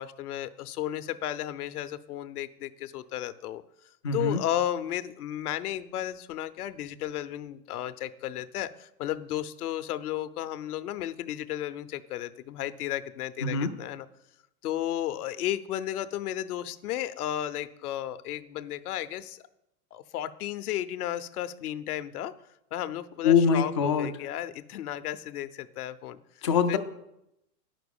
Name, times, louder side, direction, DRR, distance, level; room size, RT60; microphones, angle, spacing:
voice 1, 0.0-3.6 4.1-14.1 14.6-19.4 19.9-22.3 22.7-26.2 26.7-26.8, left 12 dB, 70° left, 11 dB, 0.8 m, -33 dB
voice 2, 4.0-4.4 13.4-13.7 23.2-24.1 26.4-26.8, left 6 dB, 25° left, 5 dB, 0.3 m, -23 dB
9.2 x 6.0 x 7.0 m, 0.82 s
hypercardioid pair, 140°, 47 cm